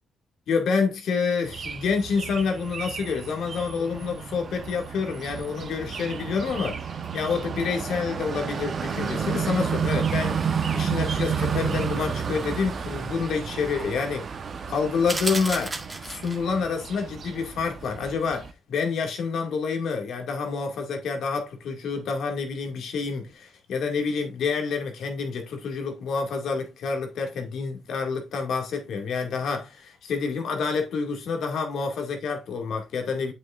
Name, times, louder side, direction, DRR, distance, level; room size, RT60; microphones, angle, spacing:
voice 1, 0.5-6.8 7.1-14.3 14.7-15.8 16.0-33.3, left 5 dB, 70° left, 2.3 m, -28 dB
sound 1, 1.4-18.5, right 6 dB, 50° right, 1.1 m, -31 dB
sound 2, 15.1-16.5, right 2 dB, 20° right, 1.7 m, -32 dB
7.8 x 6.5 x 2.6 m
cardioid pair, 90°, 0 cm